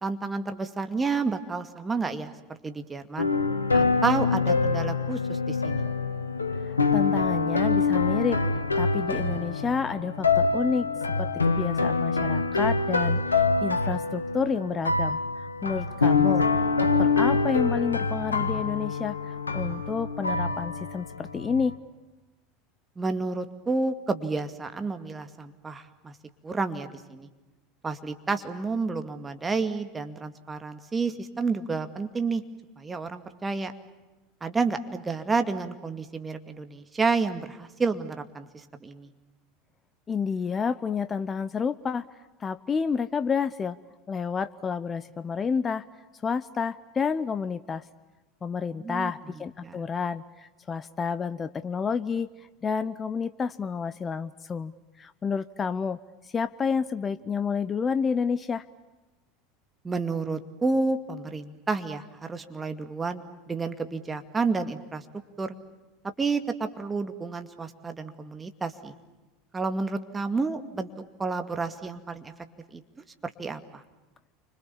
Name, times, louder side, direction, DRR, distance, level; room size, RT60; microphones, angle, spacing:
voice 1, 0.0-3.3 3.7-5.8 23.0-26.1 26.4-27.3 27.8-32.4 32.8-33.7 34.4-39.1 48.7-49.1 49.6-49.8 59.8-65.0 65.4-65.5 66.2-68.9 69.5-70.9 71.2-72.3 72.7-72.8 73.2-73.8, right 4 dB, 15° right, 8 dB, 2.3 m, -30 dB
sound 1, 3.2-21.7, left 4 dB, 85° left, 1.7 m, -25 dB
voice 2, 6.7-8.4 8.8-10.9 11.2-11.3 11.6-15.2 15.6-16.5 16.8-21.8 40.1-42.0 42.4-43.8 44.1-45.8 46.2-47.8 48.4-52.3 52.6-56.0 56.3-58.6, left 6 dB, 25° left, 13 dB, 0.9 m, -29 dB
30.0 x 25.5 x 7.2 m, 1.1 s
figure-of-eight pair, 75°, 0 cm